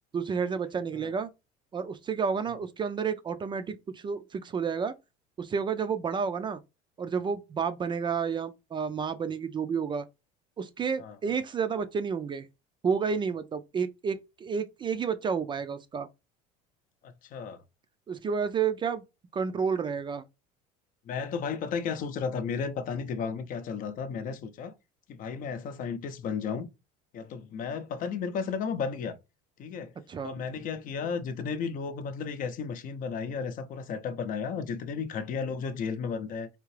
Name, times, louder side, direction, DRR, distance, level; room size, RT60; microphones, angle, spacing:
voice 1, 0.1-1.3 1.7-4.9 5.4-6.6 7.0-10.0 10.6-12.5 12.8-16.1 18.1-19.0 19.3-20.2 30.1-30.4, right 6 dB, 25° right, 0.4 m, -30 dB
voice 2, 11.0-11.4 17.0-17.6 21.1-24.7 25.1-26.7 27.1-29.2 29.6-29.9 30.2-36.5, left 6 dB, 50° left, 0.6 m, -34 dB
3.6 x 2.8 x 3.2 m
supercardioid pair, 110°, 18 cm